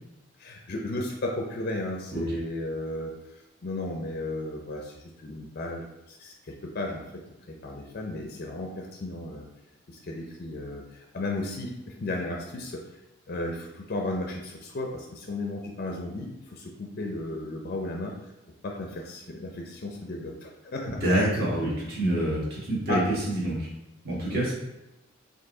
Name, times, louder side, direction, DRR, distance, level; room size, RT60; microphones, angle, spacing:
voice 1, 0.4-3.1 3.6-7.2 7.5-9.5 9.9-12.8 13.3-18.1 18.6-21.0 22.9-23.0 24.3-24.4, left 2 dB, 45° left, 1 dB, 0.5 m, -34 dB
voice 2, 20.9-23.0 23.3-23.7 24.0-24.5, right 1 dB, 45° right, -6 dB, 1.6 m, -27 dB
4.6 x 2.7 x 3.7 m, 0.95 s
head